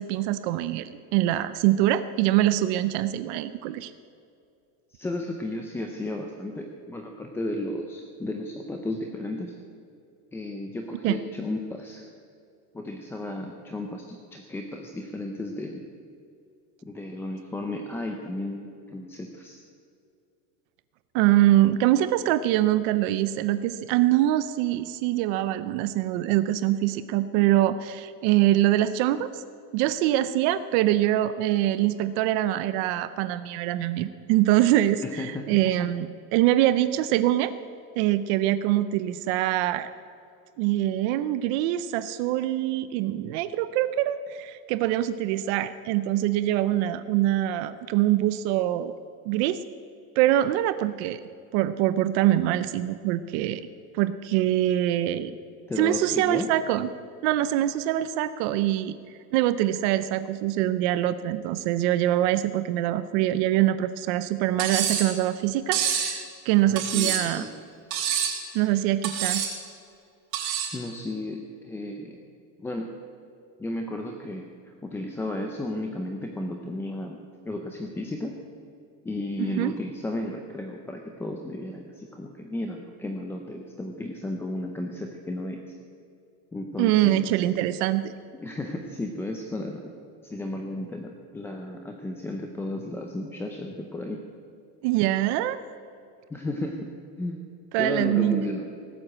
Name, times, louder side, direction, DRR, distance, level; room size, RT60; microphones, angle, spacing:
voice 1, 0.0-3.9 11.0-11.2 21.1-29.4 29.7-37.5 38.0-39.9 40.6-48.9 49.3-49.6 50.2-51.2 51.5-53.6 53.9-55.3 55.8-56.9 57.2-59.0 59.3-67.4 68.5-69.4 79.4-79.7 86.8-88.1 94.8-95.6 97.7-98.4, right 13 dB, 50° right, 13 dB, 0.6 m, -24 dB
voice 2, 4.9-9.5 10.3-12.1 12.7-15.9 16.8-19.6 35.0-35.9 55.7-56.5 66.7-67.5 70.7-72.2 72.6-72.9 73.6-77.2 77.4-78.4 79.0-85.6 86.5-87.4 88.3-89.9 90.2-94.2 96.3-96.9 97.2-97.4 97.8-98.6, left 1 dB, 5° left, 3 dB, 0.5 m, -34 dB
Cutlery silverware, 64.6-65.1 65.7-66.2 66.8-67.4 67.9-68.4 69.0-69.5 70.3-70.8, right 8 dB, 75° right, 4.2 m, -27 dB
18.5 x 8.0 x 8.5 m, 2.4 s
cardioid pair, 175°, 41 cm